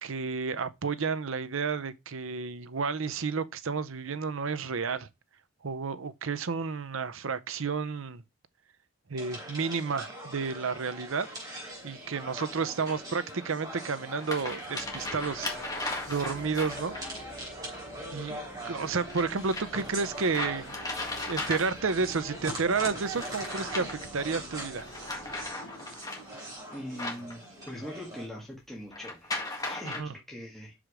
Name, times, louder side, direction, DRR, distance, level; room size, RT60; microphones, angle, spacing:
voice 1, 0.0-5.1 5.6-8.2 9.1-11.3 11.8-15.5 16.1-17.0 18.1-18.4 18.6-20.7 21.3-24.9 29.8-30.1, right 5 dB, 70° right, 0.7 m, -31 dB
sound 1, 9.2-28.3, right 1 dB, 20° right, 3.6 m, -42 dB
sound 2, 11.6-11.7 13.3-13.4 14.0-17.2 19.1-22.0 23.0-24.2 24.7-27.9 28.9-30.0, left 2 dB, 15° left, 1.7 m, -37 dB
sound 3, 14.8-25.5, equal, 40° left, 2.7 m, -50 dB
voice 2, 26.7-29.3 29.7-30.7, equal, ahead, 1.6 m, -42 dB
6.1 x 5.0 x 4.9 m
head